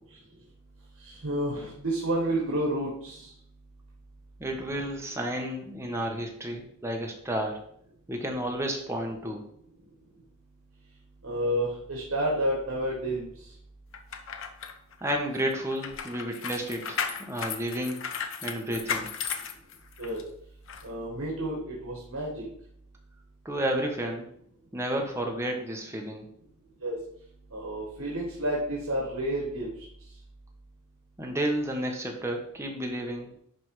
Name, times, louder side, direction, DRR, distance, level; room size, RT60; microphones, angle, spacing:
voice 1, 1.0-3.3 11.2-13.5 20.0-20.2 20.8-22.5 26.8-27.0 27.5-29.7, right 1 dB, 70° right, -2 dB, 1.8 m, -30 dB
voice 2, 4.4-7.6 8.1-9.5 15.0-18.0 18.4-19.1 23.4-24.3 24.7-26.3 31.2-33.3, right 1 dB, 10° right, 2 dB, 1.1 m, -31 dB
sound 1, 13.9-20.2 20.7-20.8, left 6 dB, 60° left, 0.8 m, -35 dB
10.5 x 3.5 x 4.8 m, 0.68 s
head